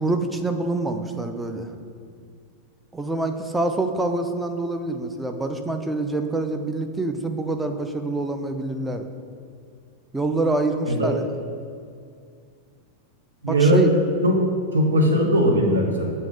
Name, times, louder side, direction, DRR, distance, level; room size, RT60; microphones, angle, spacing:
voice 1, 0.0-1.7 2.9-9.1 10.1-11.2 13.5-13.9, right 2 dB, 10° right, 6 dB, 0.4 m, -26 dB
voice 2, 13.4-13.8 14.2-14.4 14.7-16.1, right 1 dB, 70° right, 1 dB, 0.8 m, -19 dB
7.0 x 2.8 x 5.1 m, 2.3 s
figure-of-eight pair, 90°, 0 cm